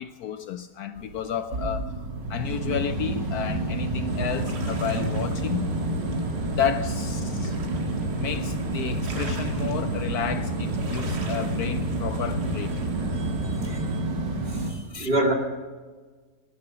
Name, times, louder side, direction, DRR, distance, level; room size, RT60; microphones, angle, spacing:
voice 1, 0.0-1.9 2.3-5.8 6.6-7.6 8.2-12.7 14.9-15.1, left 8 dB, 70° left, 1.0 m, -31 dB
sound 1, 1.0-14.7, right 2 dB, 80° right, 2.3 m, -29 dB
sound 2, 4.1-14.0, right 2 dB, 65° right, 2.2 m, -36 dB
voice 2, 13.0-15.3, right 1 dB, 30° right, 2.3 m, -29 dB
17.5 x 10.5 x 6.2 m
omnidirectional pair, 1.9 m